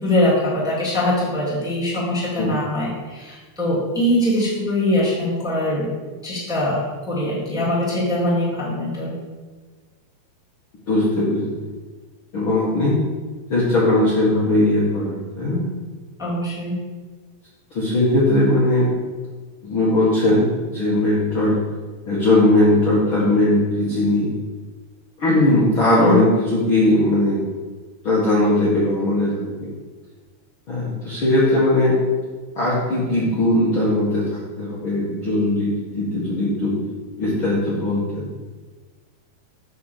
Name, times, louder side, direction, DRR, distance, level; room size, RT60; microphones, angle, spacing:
voice 1, 0.0-5.9 6.2-9.1 16.2-16.7 26.1-26.2, left 1 dB, ahead, -7 dB, 2.0 m, -22 dB
voice 2, 10.9-11.5 12.3-13.0 13.5-15.7 17.7-18.9 19.6-21.6 22.1-24.3 25.2-27.4 28.0-29.7 30.7-32.0 32.6-36.8 37.2-38.2, left 1 dB, 45° left, -7 dB, 1.9 m, -19 dB
9.9 x 4.6 x 6.6 m, 1.4 s
omnidirectional pair, 4.4 m